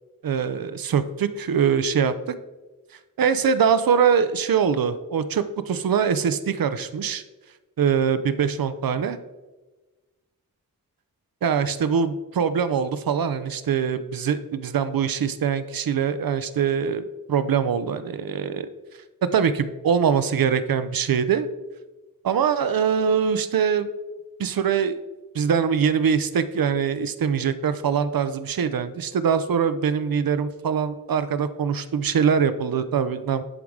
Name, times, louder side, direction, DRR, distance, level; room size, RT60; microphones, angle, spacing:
voice 1, 0.2-2.3 3.2-7.2 7.8-9.2 11.4-18.7 19.3-21.5 22.2-23.9 24.4-25.0 25.3-33.4, right 7 dB, 85° right, 12 dB, 0.6 m, -23 dB
11.0 x 3.6 x 4.8 m, 1.2 s
wide cardioid pair, 75°, 34 cm